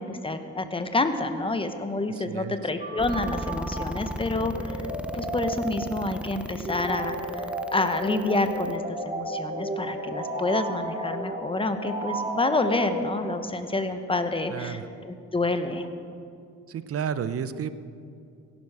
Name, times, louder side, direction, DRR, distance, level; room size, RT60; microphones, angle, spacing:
voice 1, 0.0-4.9 5.1-15.9, left 2 dB, 20° left, 8 dB, 1.1 m, -28 dB
voice 2, 2.1-2.6 14.5-14.9 16.7-17.7, right 8 dB, 50° right, 13 dB, 0.7 m, -32 dB
sound 1, 2.8-13.5, right 1 dB, 25° right, 3.4 m, -33 dB
sound 2, 3.0-8.8, equal, 5° right, 0.7 m, -36 dB
17.0 x 11.5 x 4.9 m, 2.5 s
cardioid pair, 90°, 30 cm